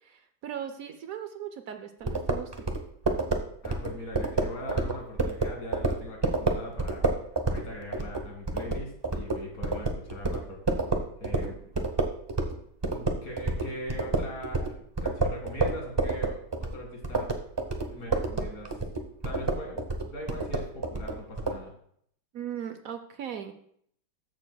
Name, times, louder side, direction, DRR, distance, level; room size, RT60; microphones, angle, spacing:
voice 1, 0.0-2.7 22.3-23.5, right 9 dB, 65° right, 8 dB, 0.9 m, -38 dB
sound 1, 2.1-12.6 12.8-21.6, right 3 dB, 30° right, 0.5 m, -29 dB
voice 2, 3.6-7.1 7.5-10.6 11.2-11.9 12.9-17.4 17.9-18.8 19.2-21.7, left 1 dB, 60° left, 0 dB, 2.6 m, -41 dB
13.5 x 6.8 x 2.3 m, 0.66 s
omnidirectional pair, 1.8 m